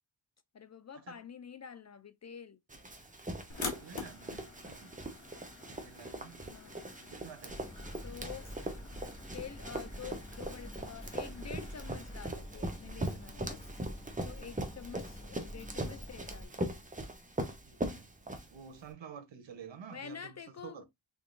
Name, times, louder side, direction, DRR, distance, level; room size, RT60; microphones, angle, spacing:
voice 1, 0.5-2.6 6.5-6.8 8.0-8.5 9.3-13.6 14.2-16.7 19.9-20.8, left 7 dB, 40° left, 0.4 m, -48 dB
Run, 2.7-18.9, right 1 dB, 15° right, 0.9 m, -41 dB
sound 1, 3.5-12.3, left 4 dB, 75° left, 1.4 m, -47 dB
voice 2, 3.5-5.0 5.8-6.4 7.1-7.7 17.6-18.1 18.5-20.8, right 7 dB, 70° right, 1.0 m, -50 dB
Walk footsteps, 7.5-16.5, equal, 15° left, 1.5 m, -47 dB
3.7 x 3.7 x 2.5 m
cardioid pair, 70°, 46 cm